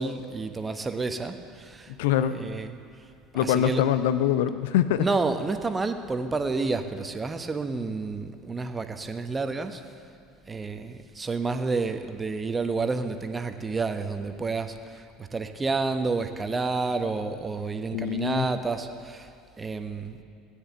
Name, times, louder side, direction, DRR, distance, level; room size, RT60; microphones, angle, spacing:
voice 1, 0.0-1.9 2.3-2.7 3.4-3.8 5.0-9.8 10.5-19.3 19.6-20.2, right 3 dB, 20° right, 8 dB, 1.1 m, -30 dB
voice 2, 1.9-2.4 3.3-5.1 17.9-18.5, left 10 dB, 65° left, 12 dB, 0.5 m, -24 dB
17.5 x 10.0 x 7.0 m, 2.4 s
figure-of-eight pair, 65°, 0 cm